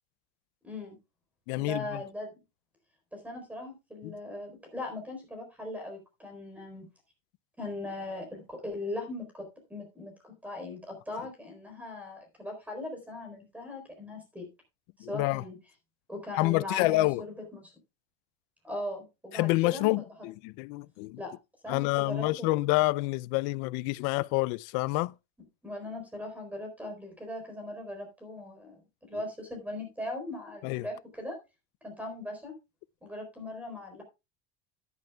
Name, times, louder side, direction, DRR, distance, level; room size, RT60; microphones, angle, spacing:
voice 1, 0.6-1.0 1.6-2.3 3.1-6.9 7.6-14.5 15.0-15.6 16.1-17.7 18.6-19.9 21.2-21.3 21.6-22.5 25.6-31.4 31.8-32.6 33.0-34.0, left 1 dB, 5° right, 4.0 m, -39 dB
voice 2, 1.5-2.0 4.0-4.1 15.0-15.4 16.4-17.2 19.3-21.2 21.7-25.1 29.1-29.2 30.6-30.9, left 21 dB, 55° left, 0.5 m, -28 dB
13.5 x 11.0 x 2.3 m
cardioid pair, 165°, 30 cm